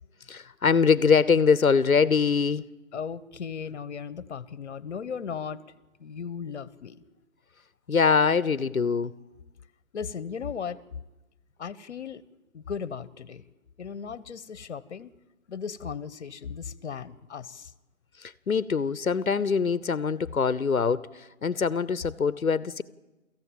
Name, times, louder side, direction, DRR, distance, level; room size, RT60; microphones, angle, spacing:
voice 1, 0.3-2.7 7.9-9.1 18.2-22.8, left 5 dB, 85° left, 0.9 m, -23 dB
voice 2, 2.9-5.6 6.0-7.0 9.9-10.8 11.6-12.2 12.5-13.4 13.8-15.1 15.5-17.7, left 6 dB, 55° left, 1.2 m, -36 dB
23.5 x 15.0 x 9.0 m
figure-of-eight pair, 140°, 41 cm